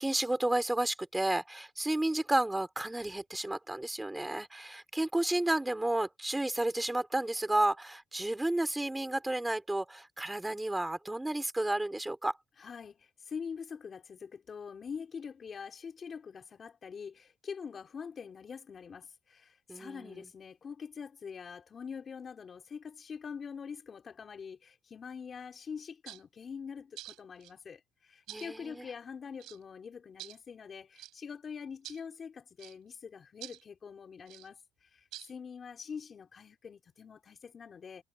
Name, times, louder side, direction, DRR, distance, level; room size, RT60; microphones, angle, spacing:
voice 1, 0.0-12.3 19.7-20.3 28.3-28.9, right 1 dB, 10° right, 4.0 m, -32 dB
voice 2, 12.6-38.0, left 6 dB, 35° left, 3.9 m, -44 dB
nut shaker, 26.1-26.2 27.0-27.5 28.3-28.5 29.4-29.6 30.2-30.4 31.0-31.1 31.8-32.0 32.6-32.7 33.4-33.6 34.3-34.5 35.1-35.3, right 17 dB, 85° right, 7.4 m, -47 dB
cardioid pair, 130°, 0 cm